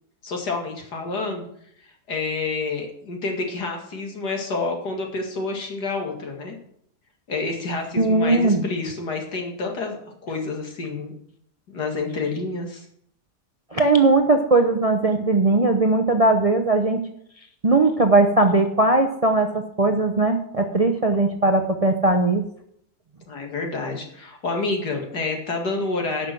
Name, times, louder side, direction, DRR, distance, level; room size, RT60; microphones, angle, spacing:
voice 1, 0.2-1.5 2.1-6.6 7.3-11.1 11.7-12.9 23.3-26.3, left 3 dB, 80° left, 2 dB, 2.7 m, -28 dB
voice 2, 8.0-8.6 13.7-17.0 17.6-22.4, right 2 dB, 30° right, 5 dB, 0.7 m, -19 dB
11.5 x 6.1 x 7.8 m, 0.69 s
omnidirectional pair, 1.7 m